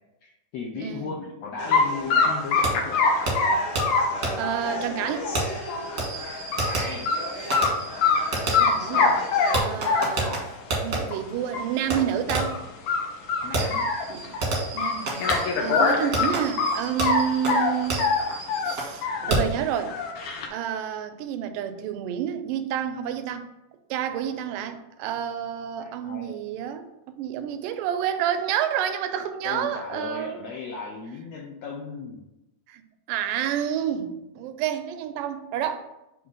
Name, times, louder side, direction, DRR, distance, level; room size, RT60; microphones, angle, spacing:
voice 1, 0.2-3.1 6.6-7.1 13.4-13.9 25.8-26.3 29.4-32.2, left 4 dB, 90° left, -2 dB, 1.4 m, -36 dB
voice 2, 0.8-1.2 4.4-5.3 8.5-9.2 9.6-10.4 10.8-12.6 14.1-14.2 14.7-15.2 15.6-18.0 18.6-19.9 20.5-23.5 23.9-26.9 27.2-30.4 32.7-32.8 33.1-35.8, right 9 dB, 90° right, 9 dB, 2.2 m, -29 dB
sound 1, 1.6-9.6, left 1 dB, 60° left, 1.5 m, -38 dB
sound 2, 1.7-1.8 2.1-5.9 6.3-6.7 7.1-7.2 7.5-8.2 8.5-10.5 11.1-11.2 11.5-11.6 11.9-12.0 12.4-12.6 12.9-14.4 14.8-17.2 17.5-19.4 19.7-20.5, left 4 dB, 75° left, 2.2 m, -23 dB
Fireworks, 2.6-2.7 3.3-3.4 3.7-3.8 4.2-4.3 5.3-11.0 11.9-12.0 12.3-12.6 13.5-18.9 19.3-19.6, right 2 dB, 55° right, 0.9 m, -30 dB
6.1 x 3.0 x 5.1 m, 0.93 s
omnidirectional pair, 3.8 m